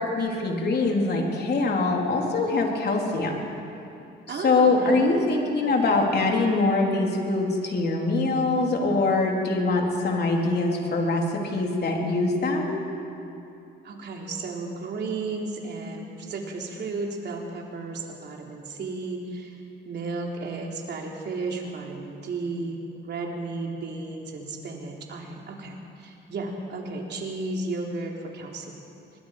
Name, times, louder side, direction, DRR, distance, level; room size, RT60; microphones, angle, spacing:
voice 1, 0.0-3.3 4.3-12.8, left 3 dB, 55° left, 0 dB, 3.9 m, -23 dB
voice 2, 4.3-5.0 13.8-28.8, right 3 dB, 60° right, 0 dB, 3.7 m, -34 dB
24.5 x 21.0 x 5.2 m, 2.7 s
cardioid pair, 90°, 20 cm